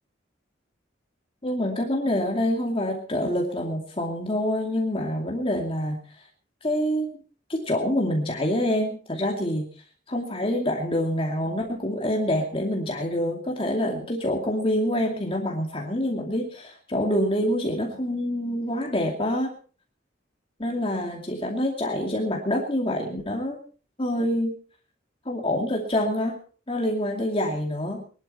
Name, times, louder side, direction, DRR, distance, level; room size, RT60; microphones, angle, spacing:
voice 1, 1.4-6.2 6.6-7.1 7.5-9.7 10.1-19.5 20.6-23.6 24.0-24.6 25.3-26.4 26.7-28.1, left 1 dB, 30° left, 0 dB, 2.5 m, -26 dB
22.5 x 12.0 x 4.3 m, 0.41 s
head